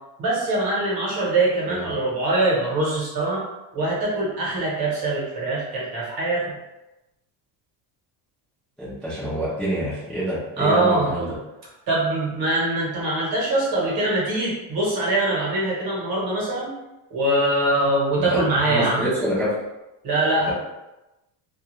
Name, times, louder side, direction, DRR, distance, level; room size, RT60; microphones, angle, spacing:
voice 1, 0.2-3.4 3.7-6.5 10.6-11.1 11.9-16.7 17.1-19.0 20.0-20.5, right 2 dB, 45° right, -5 dB, 1.0 m, -23 dB
voice 2, 8.8-11.4 18.2-19.5, equal, ahead, -12 dB, 0.5 m, -27 dB
2.4 x 2.3 x 2.9 m, 0.99 s
cardioid pair, 170°, 49 cm